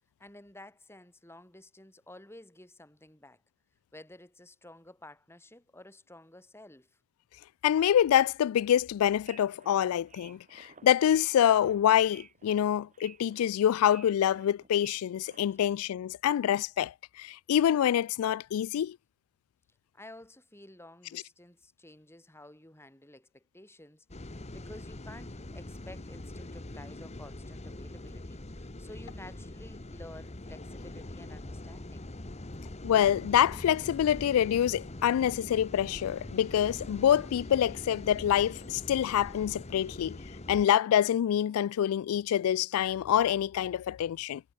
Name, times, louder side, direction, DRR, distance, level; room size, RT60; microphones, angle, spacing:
voice 1, 0.2-3.4 3.9-7.0 19.9-32.1, left 1 dB, 10° left, 6.2 m, -52 dB
voice 2, 7.6-19.0 32.8-40.2 40.5-44.4, left 10 dB, 80° left, 0.3 m, -26 dB
sound 1, 9.3-15.7, right 6 dB, 35° right, 6.3 m, -56 dB
sound 2, 24.1-40.7, left 1 dB, 30° left, 1.2 m, -43 dB
head